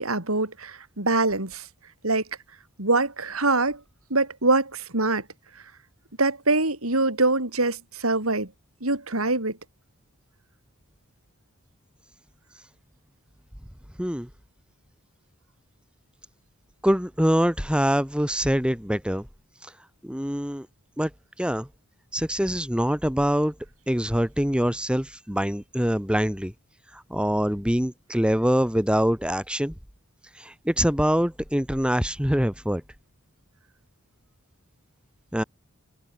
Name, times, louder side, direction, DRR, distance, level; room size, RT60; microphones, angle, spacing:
voice 1, 0.0-1.7 2.0-2.2 2.8-3.8 4.1-5.2 6.2-8.5 8.8-9.6, right 2 dB, 80° right, 5.9 m, -24 dB
voice 2, 14.0-14.3 16.8-19.3 20.0-20.7 21.0-21.1 21.4-21.7 22.1-23.5 23.9-26.5 26.9-29.7 30.4-32.8 35.3-35.4, equal, 5° right, 2.8 m, -24 dB
head